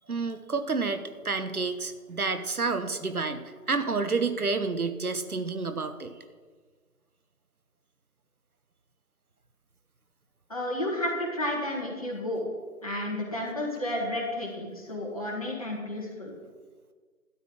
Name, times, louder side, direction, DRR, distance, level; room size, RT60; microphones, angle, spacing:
voice 1, 0.1-6.1, right 4 dB, 70° right, 9 dB, 1.1 m, -29 dB
voice 2, 10.5-12.5 12.8-16.3, left 1 dB, 25° left, -3 dB, 1.6 m, -31 dB
13.0 x 9.4 x 3.8 m, 1.5 s
figure-of-eight pair, 160°, 45 cm